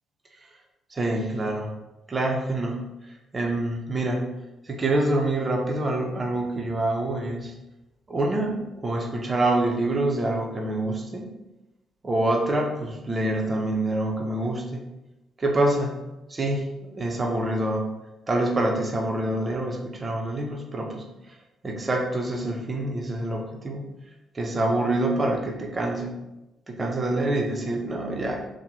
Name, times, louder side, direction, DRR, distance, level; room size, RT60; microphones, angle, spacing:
voice 1, 1.0-1.7 2.1-2.9 3.3-4.4 4.6-7.6 8.1-11.3 12.0-14.9 15.4-16.0 16.3-18.0 18.3-21.4 21.6-23.8 24.3-26.2 26.7-28.5, right 1 dB, 30° right, 2 dB, 0.6 m, -26 dB
2.7 x 2.1 x 3.2 m, 0.97 s
figure-of-eight pair, 45°, 0 cm